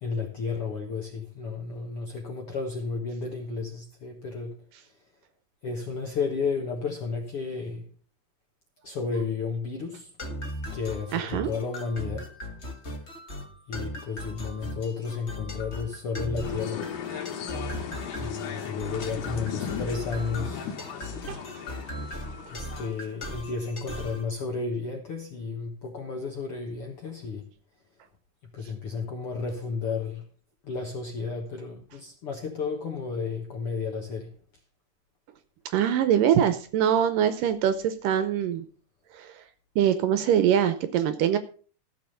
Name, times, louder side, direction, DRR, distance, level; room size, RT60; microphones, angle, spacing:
voice 1, 0.0-4.5 4.8-5.0 5.6-7.9 8.8-10.1 10.7-12.3 13.7-16.9 18.2-20.8 22.5-27.5 28.5-30.3 30.6-34.3, left 4 dB, 60° left, 1.5 m, -32 dB
sound 1, 10.2-24.3, left 1 dB, 40° left, 0.9 m, -38 dB
voice 2, 11.1-11.5 21.3-21.4 35.7-38.6 39.1-39.3 39.8-41.4, right 9 dB, 75° right, 2.2 m, -23 dB
sound 2, 16.4-23.2, left 8 dB, 85° left, 3.5 m, -36 dB
14.0 x 7.0 x 5.5 m
omnidirectional pair, 4.4 m